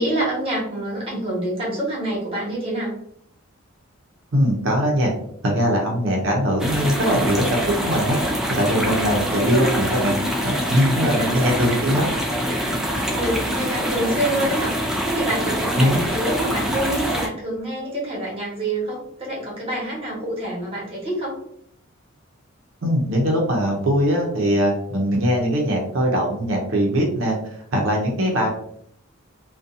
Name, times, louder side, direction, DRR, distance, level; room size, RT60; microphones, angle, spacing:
voice 1, 0.0-2.9 9.1-9.8 11.2-11.8 13.1-21.4, right 1 dB, 25° right, -5 dB, 1.1 m, -27 dB
voice 2, 4.3-5.1 5.4-8.2 8.5-10.2 10.4-12.1 15.8-16.0 22.8-27.4 27.7-28.5, equal, 65° right, -1 dB, 0.6 m, -21 dB
sound 1, 6.6-17.3, equal, 5° right, 0.3 m, -25 dB
2.6 x 2.2 x 2.5 m, 0.69 s
head